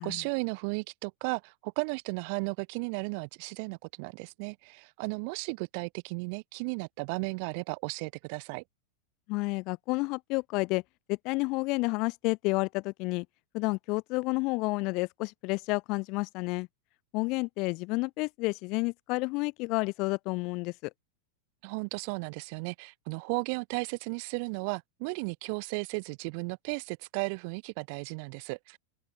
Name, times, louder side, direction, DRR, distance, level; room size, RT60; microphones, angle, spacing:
voice 1, 0.0-8.6 21.6-28.8, right 34 dB, 45° right, 7.5 m, -35 dB
voice 2, 9.3-10.8 11.1-13.2 13.5-16.7 17.1-20.9, left 26 dB, 40° left, 3.2 m, -30 dB
open air
figure-of-eight pair, 90°, 0 cm